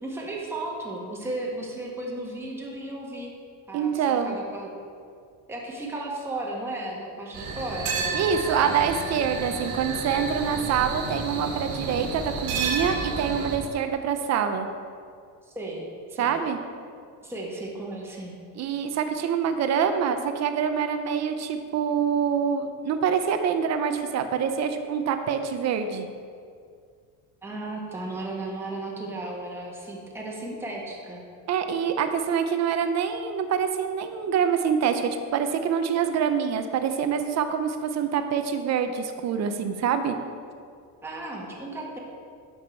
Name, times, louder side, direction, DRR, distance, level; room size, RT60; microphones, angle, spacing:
voice 1, 0.0-3.3 3.7-4.8 5.5-8.9 15.4-16.3 17.2-18.4 27.4-31.2 41.0-42.0, right 2 dB, 5° right, -3 dB, 1.4 m, -35 dB
voice 2, 3.7-4.4 8.1-14.7 16.2-16.6 18.6-26.1 31.5-40.1, right 7 dB, 40° right, 8 dB, 0.7 m, -25 dB
sound 1, 7.3-13.6, right 4 dB, 65° right, 1.8 m, -31 dB
11.0 x 5.8 x 4.5 m, 2.2 s
cardioid pair, 140°, 40 cm